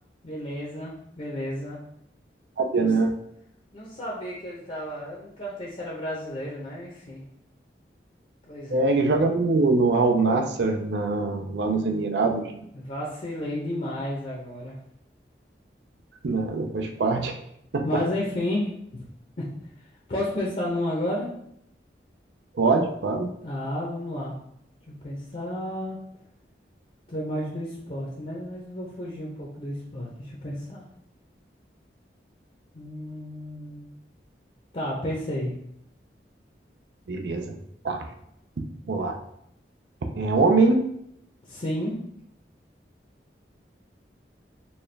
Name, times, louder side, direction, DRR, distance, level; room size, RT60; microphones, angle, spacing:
voice 1, 0.2-1.8 2.8-2.9 3.7-7.3 8.5-8.9 12.7-14.8 17.8-18.7 18.9-19.1 19.4-19.5 20.1-21.3 23.4-24.3 24.9-26.0 27.1-30.8 32.7-33.9 34.7-35.5 41.5-42.0, left 1 dB, 40° left, -4 dB, 0.6 m, -32 dB
voice 2, 2.6-3.1 8.7-12.4 16.2-17.3 17.7-18.0 22.5-23.3 37.1-37.6 37.8-38.0 38.9-39.2 40.1-40.8, right 3 dB, 75° right, 4 dB, 0.5 m, -23 dB
4.2 x 2.2 x 3.2 m, 0.74 s
head